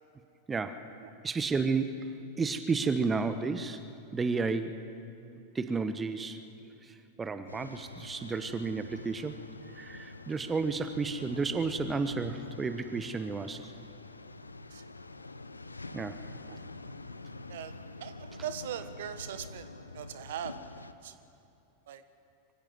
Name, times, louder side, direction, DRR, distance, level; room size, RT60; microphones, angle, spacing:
voice 1, 0.5-0.9 1.2-3.8 4.1-4.9 5.5-6.4 6.8-9.4 9.7-13.7 15.9-16.2, right 4 dB, 15° right, 10 dB, 1.0 m, -32 dB
sound 1, 7.5-20.9, left 3 dB, 80° left, 0.8 m, -46 dB
voice 2, 18.0-19.7 19.9-21.1 21.9-22.0, right 9 dB, 55° right, 11 dB, 1.2 m, -40 dB
24.5 x 15.5 x 7.9 m, 2.7 s
figure-of-eight pair, 90°, 0 cm